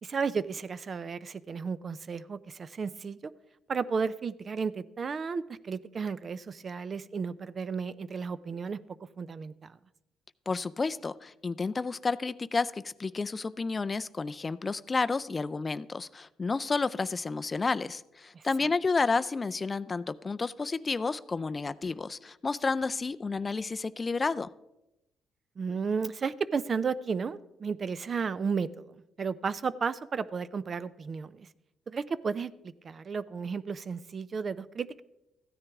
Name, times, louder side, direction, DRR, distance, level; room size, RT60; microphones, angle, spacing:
voice 1, 0.0-3.3 3.7-8.8 9.2-9.8 18.3-18.4 25.6-31.5 31.9-35.0, right 5 dB, 45° right, 16 dB, 0.4 m, -33 dB
voice 2, 10.5-24.5, left 4 dB, 30° left, 14 dB, 0.3 m, -31 dB
14.5 x 9.8 x 3.5 m, 0.93 s
cardioid pair, 90°, 0 cm